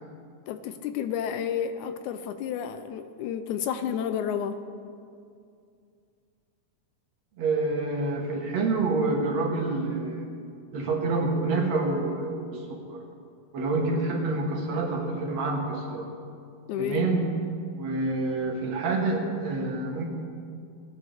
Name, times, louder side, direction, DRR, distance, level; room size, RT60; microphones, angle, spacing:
voice 1, 0.5-4.6 16.7-17.1, left 8 dB, 80° left, 9 dB, 2.0 m, -31 dB
voice 2, 7.4-10.3 10.7-13.0 13.5-16.1 16.8-17.2 17.7-20.0, right 3 dB, 65° right, 1 dB, 2.4 m, -27 dB
18.5 x 11.0 x 3.5 m, 2.3 s
omnidirectional pair, 3.5 m